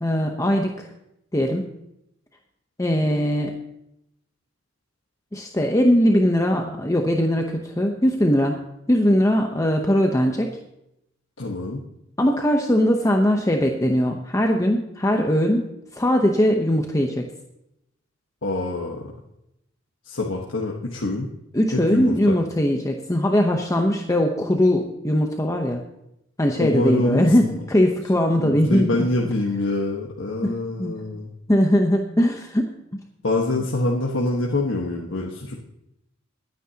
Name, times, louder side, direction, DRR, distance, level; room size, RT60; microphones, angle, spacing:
voice 1, 0.0-0.9 1.3-1.7 2.8-3.5 5.3-8.6 8.9-10.5 12.2-15.7 15.9-17.2 21.5-25.8 26.4-29.1 30.4-30.5 30.8-31.0 31.5-32.7, equal, 15° left, 2 dB, 0.9 m, -20 dB
voice 2, 11.4-11.8 18.4-19.1 20.0-21.3 21.7-22.4 26.6-27.6 28.4-31.3 33.2-35.5, left 2 dB, 70° left, -2 dB, 1.4 m, -25 dB
22.0 x 9.5 x 2.9 m, 0.83 s
head